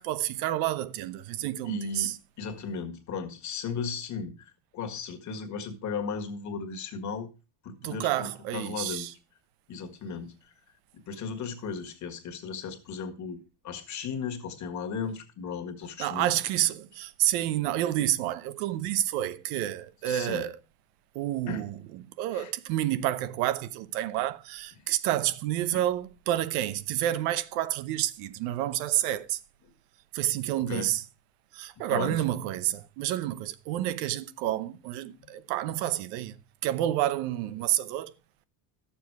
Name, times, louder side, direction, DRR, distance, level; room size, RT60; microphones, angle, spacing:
voice 1, 0.0-2.2 7.8-9.1 16.0-20.5 21.1-29.4 30.1-31.0 31.5-36.3 36.6-38.1, right 13 dB, 90° right, 0.9 m, -29 dB
voice 2, 1.6-7.3 7.6-9.1 9.7-10.4 10.9-16.3 20.1-20.5 21.5-21.6 22.3-22.5 25.7-25.8 30.6-30.9 31.9-32.2 35.2-35.3, left 5 dB, 40° left, 1.8 m, -36 dB
13.0 x 7.2 x 4.7 m
cardioid pair, 155°, 45 cm